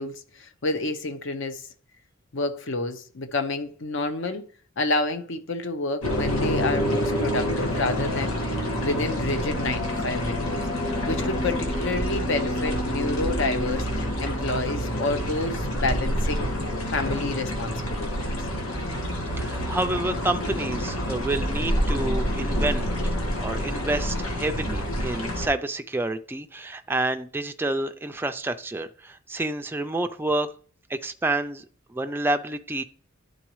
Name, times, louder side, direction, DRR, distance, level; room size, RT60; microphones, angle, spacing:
voice 1, 0.0-1.6 2.3-4.4 4.8-10.6 11.1-16.5 16.9-18.3, left 2 dB, 60° left, 0.8 m, -29 dB
sound 1, 6.0-25.5, equal, 85° left, 1.5 m, -27 dB
voice 2, 19.4-22.9 23.4-30.5 30.9-31.6 31.9-32.8, right 2 dB, 10° right, 0.3 m, -28 dB
11.5 x 3.9 x 3.1 m
head